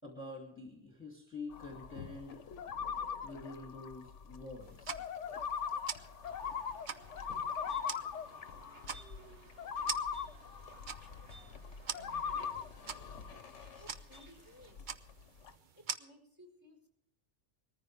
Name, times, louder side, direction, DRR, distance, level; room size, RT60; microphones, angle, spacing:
voice 1, 0.0-2.4 3.2-5.0, left 3 dB, 10° left, 1 dB, 2.9 m, -47 dB
sound 1, 1.5-14.3 14.6-15.5, left 7 dB, 80° left, 1.2 m, -41 dB
sound 2, 4.6-16.0, right 7 dB, 45° right, 0.8 m, -46 dB
sound 3, 6.2-14.7, right 3 dB, 70° right, 1.9 m, -59 dB
voice 2, 13.8-14.9 15.7-16.9, equal, 15° right, 1 dB, 4.3 m, -59 dB
20.5 x 14.5 x 3.4 m, 0.75 s
omnidirectional pair, 1.2 m